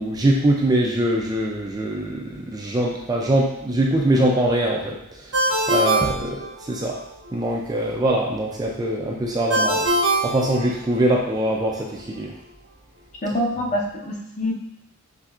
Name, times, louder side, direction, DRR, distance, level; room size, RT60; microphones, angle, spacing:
voice 1, 0.0-7.0 7.3-9.9 10.2-12.3, right 1 dB, 15° right, -1 dB, 0.4 m, -23 dB
Ringtone, 5.3-7.0 9.5-11.2, right 1 dB, 75° right, 0.8 m, -23 dB
voice 2, 13.2-14.5, equal, 35° left, -2 dB, 0.8 m, -25 dB
5.9 x 3.3 x 2.4 m, 0.79 s
head